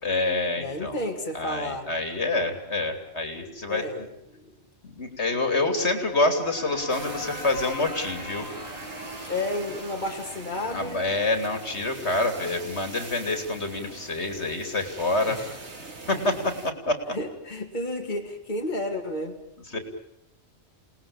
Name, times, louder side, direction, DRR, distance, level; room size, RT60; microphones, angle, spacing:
voice 1, 0.0-0.9 1.3-3.8 4.8-8.5 10.7-15.4 16.1-17.1 19.7-19.8, left 2 dB, 75° left, 6 dB, 3.4 m, -27 dB
voice 2, 0.6-1.9 3.7-4.5 9.2-11.2 15.3-15.5 17.1-19.4, left 1 dB, 45° left, 2 dB, 2.6 m, -32 dB
sound 1, 5.7-12.4, equal, 35° right, 4.7 m, -41 dB
sound 2, 6.9-16.7, right 3 dB, 80° right, 2.6 m, -43 dB
29.5 x 19.5 x 8.8 m, 0.82 s
omnidirectional pair, 1.1 m